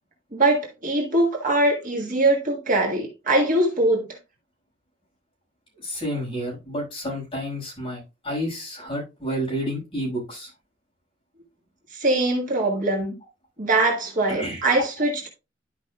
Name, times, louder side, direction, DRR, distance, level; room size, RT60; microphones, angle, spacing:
voice 1, 0.3-4.1 11.9-13.1 13.6-15.3, right 2 dB, 45° right, 1.6 m, -22 dB
voice 2, 5.8-10.5 14.3-14.6, equal, 25° left, 5.0 m, -30 dB
12.0 x 5.2 x 2.3 m
head